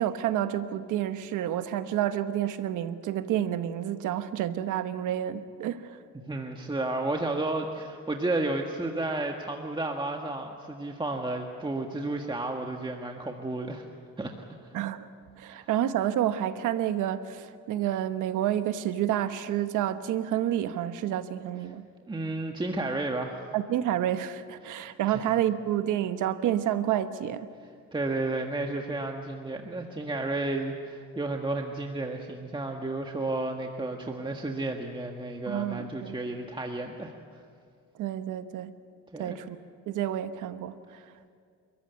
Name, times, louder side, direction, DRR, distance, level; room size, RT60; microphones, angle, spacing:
voice 1, 0.0-6.0 14.7-15.1 15.4-21.9 23.5-27.5 35.5-36.2 38.0-38.7 39.2-39.6 39.9-40.7, right 11 dB, 90° right, 1.2 m, -29 dB
voice 2, 6.1-13.8 14.2-14.3 14.6-14.7 15.5-15.7 22.1-23.4 24.6-24.8 25.1-25.2 27.9-37.1 39.1-39.4, right 2 dB, 15° right, 1.7 m, -32 dB
29.5 x 14.5 x 9.3 m
cardioid pair, 90°, 30 cm